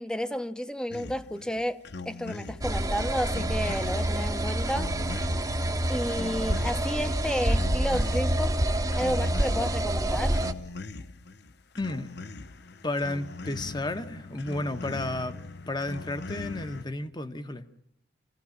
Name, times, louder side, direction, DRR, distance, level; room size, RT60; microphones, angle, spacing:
voice 1, 0.0-1.8 2.0-4.9 5.9-8.6 9.0-10.5, equal, 5° left, 0.9 m, -31 dB
sound 1, 0.9-16.8, left 3 dB, 65° left, 0.9 m, -41 dB
sound 2, 2.6-10.5, right 1 dB, 20° right, 1.0 m, -27 dB
voice 2, 11.8-12.2 12.8-15.4 15.7-17.7, left 2 dB, 25° left, 1.1 m, -32 dB
27.0 x 16.5 x 7.3 m
head